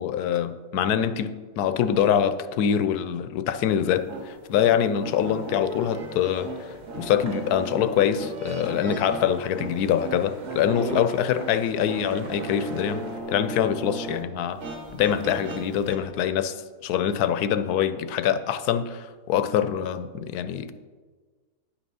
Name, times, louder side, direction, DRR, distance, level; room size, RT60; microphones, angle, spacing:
voice 1, 0.0-6.7 7.0-14.6 14.9-16.6 16.8-20.7, left 9 dB, 80° left, 1.1 m, -24 dB
sound 1, 3.9-14.2 14.5-16.0, right 3 dB, 75° right, 1.9 m, -38 dB
sound 2, 5.2-13.2, right 3 dB, 45° right, 0.6 m, -41 dB
10.0 x 5.9 x 5.5 m
omnidirectional pair, 1.7 m